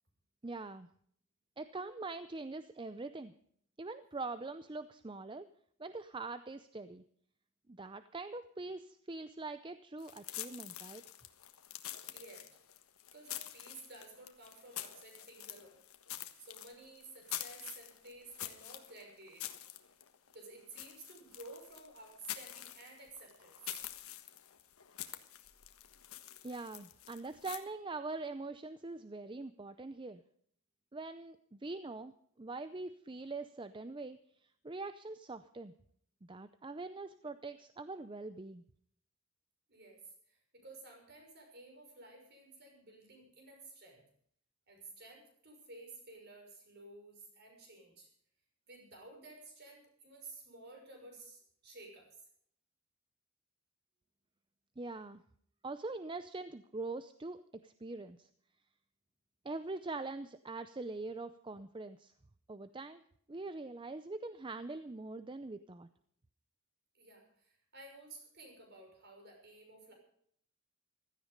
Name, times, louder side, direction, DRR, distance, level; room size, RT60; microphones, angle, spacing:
voice 1, 0.4-0.9 1.6-3.3 3.8-5.5 5.8-7.0 7.7-11.0 26.4-30.2 30.9-32.1 32.4-35.7 36.3-38.6 54.8-55.2 55.6-58.3 59.4-62.1 62.5-63.0 63.3-65.9, right 3 dB, 20° right, 12 dB, 0.5 m, -43 dB
sound 1, 10.0-27.6, left 13 dB, 75° left, 1.4 m, -47 dB
voice 2, 12.1-12.4 13.1-15.8 16.4-19.5 20.3-23.5 39.7-40.0 40.3-44.0 44.7-48.1 48.7-52.1 66.9-69.9, right 2 dB, 50° right, 2 dB, 6.0 m, -53 dB
16.0 x 14.0 x 5.2 m, 0.63 s
head